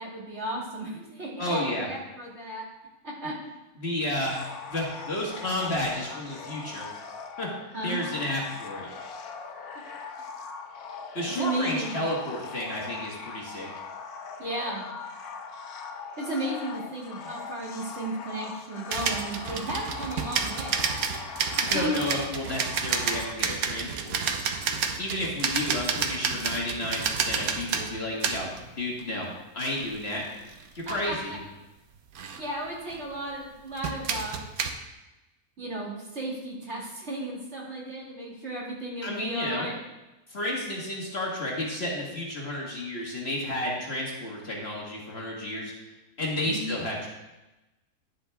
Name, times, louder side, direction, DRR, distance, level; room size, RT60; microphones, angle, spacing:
voice 1, 0.0-2.7 3.0-3.3 7.7-8.0 11.4-12.0 14.4-14.9 16.2-20.9 21.7-22.1 30.9-31.4 32.4-34.4 35.6-39.7 46.5-46.7, right 1 dB, 45° right, -5 dB, 2.6 m, -34 dB
voice 2, 1.4-1.9 3.8-4.4 4.7-6.9 7.4-7.5 7.8-8.9 11.1-13.7 21.5-24.4 25.0-29.3 29.5-30.2 30.7-31.4 39.0-39.7 40.3-45.7 46.2-47.1, left 1 dB, 45° left, -2 dB, 1.7 m, -31 dB
sound 1, 4.2-23.3, left 5 dB, 80° left, 1.3 m, -41 dB
sound 2, 18.9-28.7 29.0-29.2 29.8-31.3 32.1-32.4 32.9-33.3 33.8-34.7, right 6 dB, 75° right, 1.2 m, -30 dB
11.0 x 7.5 x 3.5 m, 1.0 s
omnidirectional pair, 1.6 m